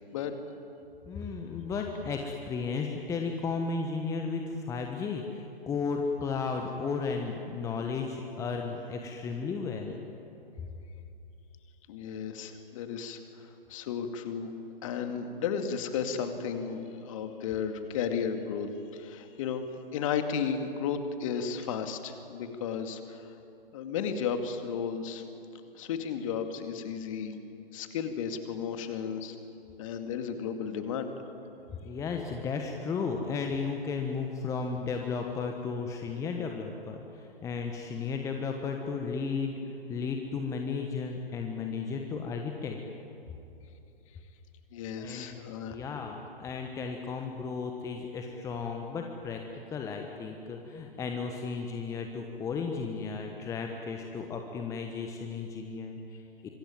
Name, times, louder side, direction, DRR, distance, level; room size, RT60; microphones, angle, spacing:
voice 1, 1.1-10.0 31.8-42.8 45.0-45.3 45.7-49.4 49.7-56.5, left 5 dB, 10° left, 3 dB, 1.2 m, -34 dB
voice 2, 11.9-13.4 13.7-14.5 14.8-23.3 23.7-25.2 25.7-27.4 27.7-29.4 29.8-31.2 44.7-45.8, left 7 dB, 35° left, 7 dB, 2.2 m, -34 dB
25.5 x 22.0 x 9.5 m, 2.7 s
figure-of-eight pair, 125°, 29 cm